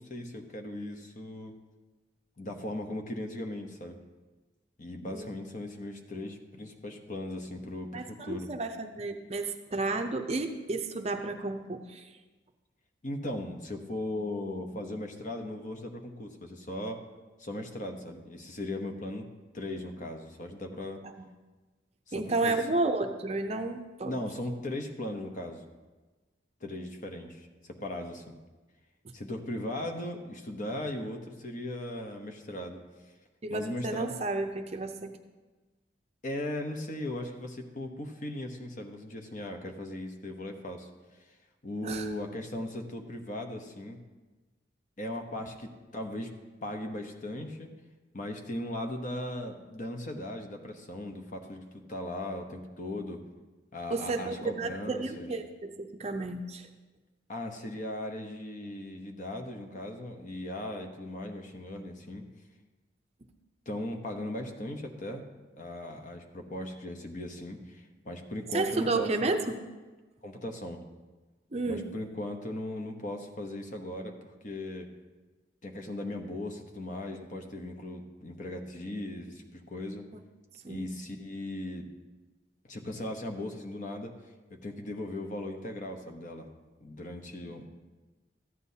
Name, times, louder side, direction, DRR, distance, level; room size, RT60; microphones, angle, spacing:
voice 1, 0.0-1.5 2.4-4.0 4.8-8.5 13.0-17.0 17.4-19.2 19.5-21.0 22.1-22.6 24.0-25.6 26.6-28.3 29.1-32.8 33.5-34.2 36.2-40.9 41.6-44.0 45.0-46.3 46.6-47.7 48.1-53.2 53.7-55.3 57.3-62.2 63.7-65.3 65.6-69.3 70.2-70.8 71.7-74.9 75.6-80.0 80.7-81.9 82.7-84.1 84.5-86.5 86.8-87.7, left 1 dB, 40° left, 4 dB, 0.9 m, -38 dB
voice 2, 7.9-12.1 21.2-21.3 22.1-24.2 33.4-35.2 41.8-42.1 53.9-56.7 68.5-69.6 71.5-71.9 80.6-80.9 87.6-87.7, right 3 dB, 35° right, 5 dB, 0.5 m, -32 dB
14.0 x 9.7 x 2.8 m, 1.2 s
head